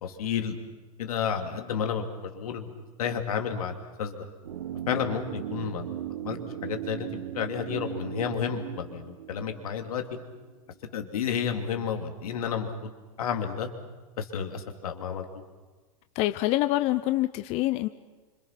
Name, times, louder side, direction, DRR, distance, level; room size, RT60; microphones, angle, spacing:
voice 1, 0.0-0.5 1.0-2.0 2.3-2.7 3.0-4.2 4.9-5.9 6.2-10.0 10.9-12.9 13.2-13.7 14.2-15.2, left 7 dB, 80° left, 4 dB, 2.9 m, -31 dB
sound 1, 4.4-10.5 10.7-10.8, right 11 dB, 80° right, 1.2 m, -38 dB
voice 2, 16.1-17.9, left 17 dB, 35° left, 11 dB, 0.7 m, -26 dB
26.5 x 26.0 x 5.9 m, 1.3 s
hypercardioid pair, 135°, 18 cm